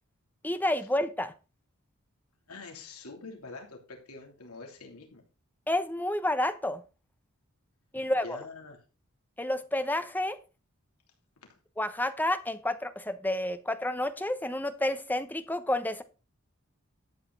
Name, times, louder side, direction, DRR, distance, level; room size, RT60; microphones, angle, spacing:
voice 1, 0.4-1.3 5.7-6.8 7.9-8.4 9.4-10.4 11.8-16.0, left 1 dB, 10° left, 11 dB, 0.9 m, -30 dB
voice 2, 2.5-5.2 7.9-8.8 11.5-11.6, left 3 dB, 85° left, 2 dB, 3.1 m, -45 dB
12.5 x 8.2 x 4.0 m, 0.32 s
head